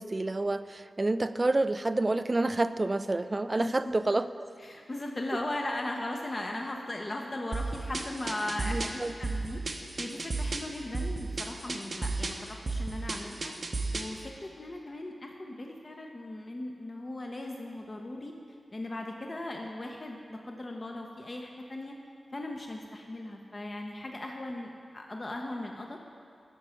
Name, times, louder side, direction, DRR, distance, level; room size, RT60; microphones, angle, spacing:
voice 1, 0.0-4.5 8.6-9.1, right 2 dB, 35° right, 13 dB, 0.3 m, -28 dB
voice 2, 3.5-4.0 4.6-13.5 13.9-18.3 18.7-21.9 22.3-26.0, left 1 dB, 45° left, 2 dB, 0.8 m, -38 dB
sound 1, 7.5-14.2, right 3 dB, 55° right, 0.8 m, -34 dB
9.9 x 6.2 x 5.7 m, 2.3 s
cardioid pair, 40°, 0 cm